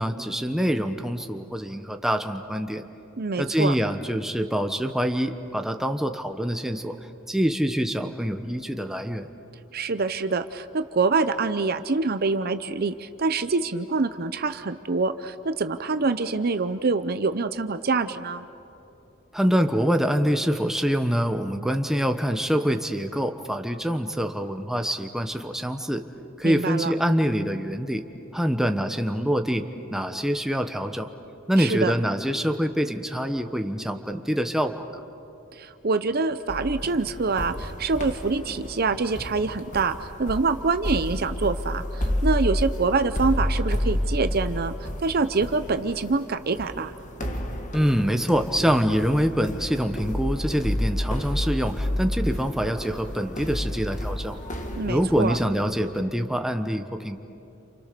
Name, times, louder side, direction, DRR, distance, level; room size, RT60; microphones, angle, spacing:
voice 1, 0.0-2.8 3.4-6.9 7.3-9.3 19.3-26.0 26.4-28.0 28.3-29.6 29.9-31.1 31.5-35.0 47.7-54.4 54.9-57.2, equal, ahead, 6 dB, 1.1 m, -25 dB
voice 2, 3.2-3.7 9.7-18.4 26.4-26.9 31.6-31.9 35.5-46.9 54.8-55.4, right 4 dB, 50° right, 11 dB, 0.7 m, -25 dB
sound 1, 36.5-56.0, left 1 dB, 40° left, 2.0 m, -30 dB
29.0 x 28.5 x 6.8 m, 2.9 s
head